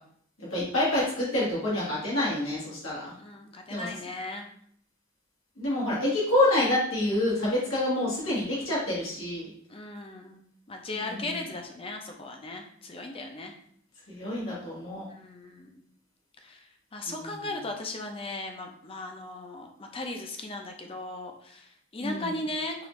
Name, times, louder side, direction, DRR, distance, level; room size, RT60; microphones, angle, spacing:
voice 1, 0.5-3.1 3.7-3.9 5.6-9.4 11.1-11.2 14.1-15.0 17.1-17.3 22.0-22.3, left 1 dB, 90° left, -8 dB, 1.7 m, -27 dB
voice 2, 3.2-4.5 9.7-10.4 10.7-13.5 15.1-15.8 16.4-16.6 16.9-22.9, left 2 dB, 30° left, 3 dB, 0.5 m, -37 dB
4.8 x 2.5 x 3.1 m, 0.64 s
head